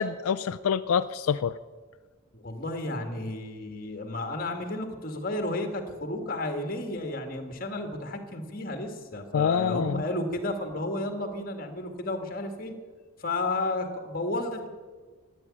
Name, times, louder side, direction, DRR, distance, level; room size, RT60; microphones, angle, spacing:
voice 1, 0.0-1.5 9.3-10.0, left 7 dB, 85° left, 10 dB, 0.4 m, -26 dB
voice 2, 2.3-12.7 13.2-14.7, left 2 dB, 40° left, 5 dB, 1.9 m, -32 dB
14.0 x 9.8 x 8.5 m, 1.5 s
head